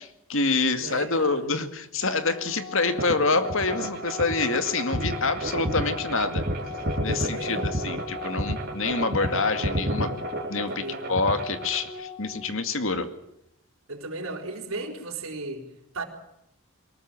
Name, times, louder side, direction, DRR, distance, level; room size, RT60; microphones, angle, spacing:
voice 1, 0.0-6.4 7.0-10.1 10.5-13.1, left 3 dB, 65° left, 9 dB, 2.2 m, -26 dB
voice 2, 0.7-1.5 7.1-7.7 10.7-11.2 13.9-15.6 15.9-16.0, right 2 dB, 75° right, 3 dB, 4.4 m, -35 dB
Organ, 2.0-13.0, left 4 dB, 50° left, 7.8 m, -41 dB
sound 1, 3.0-11.9, right 1 dB, 45° right, 3.3 m, -30 dB
23.0 x 20.0 x 7.5 m, 0.81 s
head